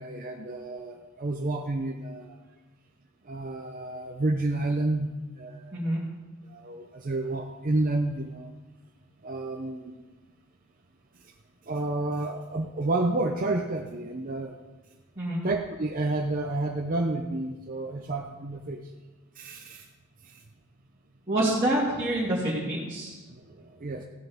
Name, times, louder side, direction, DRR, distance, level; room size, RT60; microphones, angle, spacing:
voice 1, 0.0-2.4 3.2-5.1 5.4-5.8 6.5-8.5 9.2-10.0 11.7-14.6 15.4-18.9 19.4-19.9 23.3-24.0, right 2 dB, 40° right, 1 dB, 0.6 m, -30 dB
voice 2, 21.3-23.2, right 1 dB, 20° right, -11 dB, 2.7 m, -27 dB
15.5 x 9.2 x 3.6 m, 1.2 s
head